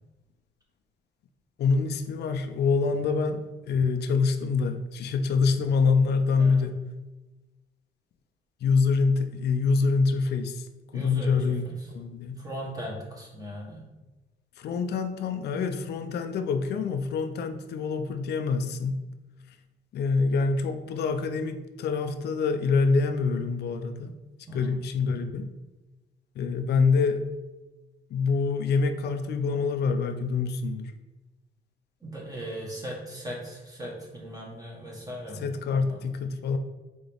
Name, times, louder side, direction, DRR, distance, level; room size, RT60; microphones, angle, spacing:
voice 1, 1.6-6.8 8.6-10.7 10.9-11.6 11.9-12.4 14.6-19.1 19.9-24.1 24.5-25.5 26.4-27.2 28.1-30.9 35.4-36.6, left 4 dB, 55° left, 7 dB, 0.4 m, -26 dB
voice 2, 10.9-11.4 11.6-11.9 12.4-13.8 24.5-24.8 32.0-36.0, equal, 20° right, -4 dB, 1.2 m, -39 dB
3.8 x 2.9 x 3.4 m, 1.1 s
cardioid pair, 90°, 20 cm